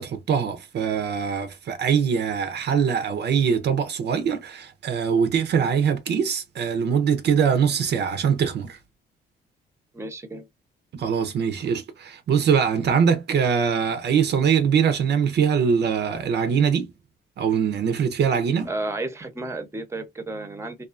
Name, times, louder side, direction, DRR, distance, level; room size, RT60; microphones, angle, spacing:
voice 1, 0.0-8.8 10.9-16.9 17.4-18.7, right 7 dB, 60° right, 0.5 m, -22 dB
voice 2, 9.9-10.5 18.7-20.8, right 2 dB, 15° right, 0.7 m, -32 dB
2.4 x 2.3 x 2.4 m
cardioid pair, 90°, 20 cm